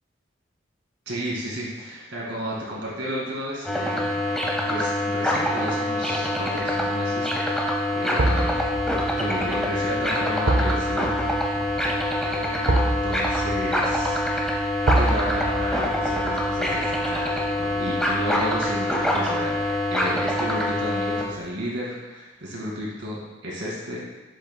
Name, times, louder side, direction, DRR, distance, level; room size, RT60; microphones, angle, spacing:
voice 1, 1.1-4.3 4.7-8.7 9.2-11.1 11.5-11.7 12.2-14.7 15.0-19.6 19.9-24.0, equal, 80° right, -4 dB, 2.2 m, -33 dB
sound 1, 3.6-21.2, left 1 dB, 5° left, 0.7 m, -25 dB
sound 2, 6.4-6.8 8.2-19.2 19.5-19.6, right 1 dB, 60° right, 0.7 m, -28 dB
7.3 x 6.9 x 2.2 m, 1.1 s
head